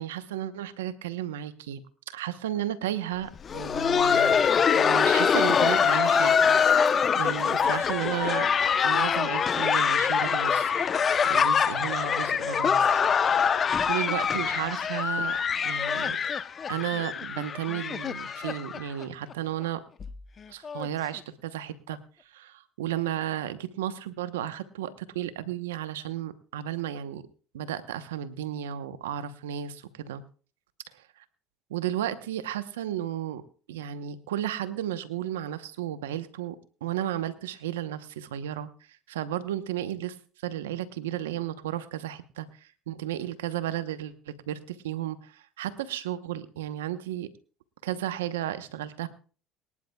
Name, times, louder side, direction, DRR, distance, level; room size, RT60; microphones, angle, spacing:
voice 1, 0.0-1.8 2.1-4.4 4.7-6.6 6.9-8.5 8.8-10.8 11.2-15.4 15.6-16.2 16.7-19.8 20.5-22.0 22.3-27.2 27.5-30.2 30.9-31.0 31.7-33.4 33.7-38.7 39.1-40.2 40.4-47.3 47.8-49.1, right 11 dB, 90° right, 12 dB, 0.9 m, -33 dB
Laughter, 3.3-19.0 19.3-19.4 20.0-20.1 20.6-20.9 21.9-22.0, left 7 dB, 40° left, 0.8 m, -24 dB
23.0 x 11.0 x 2.3 m, 0.38 s
hypercardioid pair, 80°, 0 cm